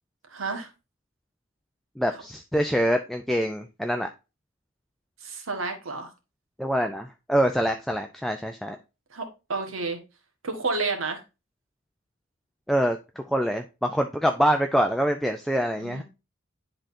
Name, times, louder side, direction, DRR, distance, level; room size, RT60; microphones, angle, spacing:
voice 1, 0.3-0.7 5.2-6.1 9.1-10.0 10.4-11.2 15.8-16.0, right 3 dB, 80° right, 5 dB, 1.4 m, -30 dB
voice 2, 2.0-4.1 6.6-8.8 12.7-16.0, equal, ahead, 5 dB, 0.3 m, -25 dB
10.5 x 3.8 x 2.6 m, 0.27 s
head